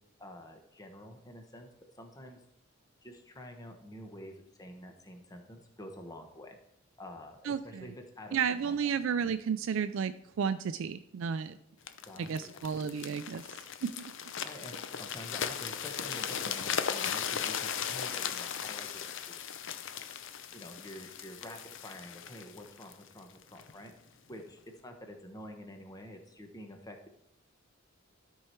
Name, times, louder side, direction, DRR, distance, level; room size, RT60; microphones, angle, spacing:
voice 1, 0.2-1.7 2.0-2.4 3.0-6.6 7.0-8.9 12.1-12.6 14.4-19.5 20.5-23.9 24.3-27.1, left 1 dB, 20° left, 4 dB, 0.9 m, -48 dB
voice 2, 7.4-7.8 8.3-11.5 12.2-13.4 13.8-14.1, right 7 dB, 70° right, 11 dB, 0.4 m, -32 dB
sound 1, 11.9-23.7 24.3-24.5, left 8 dB, 65° left, 0.6 m, -37 dB
12.5 x 4.7 x 4.5 m, 0.77 s
head